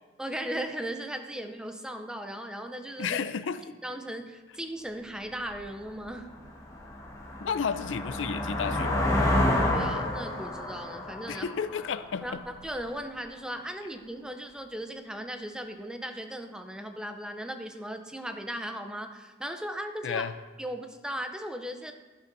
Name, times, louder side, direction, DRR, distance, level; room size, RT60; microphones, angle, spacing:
voice 1, 0.2-3.2 3.8-6.3 9.7-11.5 12.2-20.3 20.6-21.9, right 1 dB, 5° right, 6 dB, 0.5 m, -37 dB
voice 2, 3.0-3.7 7.4-9.0 11.3-12.4 20.0-20.3, left 6 dB, 75° left, 13 dB, 0.4 m, -32 dB
sound 1, 5.5-5.6 6.1-12.7, left 1 dB, 15° left, 1.3 m, -29 dB
12.0 x 11.0 x 2.6 m, 1.3 s
head